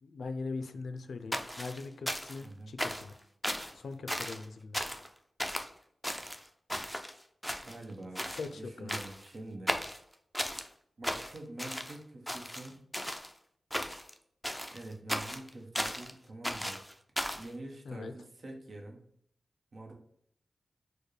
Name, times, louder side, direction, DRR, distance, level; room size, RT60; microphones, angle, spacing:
voice 1, 0.0-3.2 3.7-4.8 8.3-9.0 17.9-18.1, left 4 dB, 85° left, 9 dB, 0.3 m, -41 dB
sound 1, 1.3-2.5 2.8-3.1 3.4-3.7 4.1-4.4 4.7-5.1 5.4-5.7 6.0-7.1 7.4-7.9 8.2-8.5 8.9-9.3 9.7-10.7 11.0-12.0 12.3-13.3 13.7-14.1 14.4-16.1 16.4-17.5, equal, 5° left, 0.4 m, -36 dB
voice 2, 2.4-2.7 7.6-9.8 11.0-12.9 14.7-16.8 17.3-19.1 19.7-19.9, right 2 dB, 60° right, 2 dB, 0.8 m, -46 dB
4.5 x 2.1 x 3.1 m, 0.66 s
cardioid pair, 55°, 0 cm